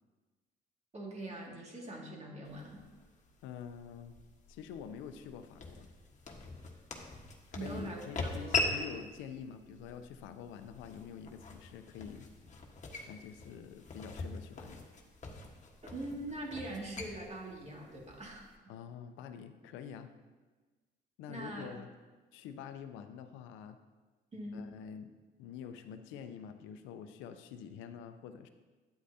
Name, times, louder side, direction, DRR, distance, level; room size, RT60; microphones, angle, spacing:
voice 1, 0.9-2.8 7.5-8.0 8.4-8.5 15.8-18.5 21.3-21.7 24.3-24.6, right 1 dB, 35° right, -2 dB, 2.1 m, -42 dB
sound 1, 2.5-18.6, left 3 dB, 40° left, 1.3 m, -42 dB
voice 2, 3.4-4.2 4.5-5.9 7.6-12.3 13.1-14.8 18.7-20.1 21.2-21.9 22.3-23.8 24.5-25.1 25.4-28.5, left 7 dB, 85° left, 9 dB, 0.6 m, -47 dB
9.0 x 8.2 x 2.8 m, 1.3 s
supercardioid pair, 70°, 20 cm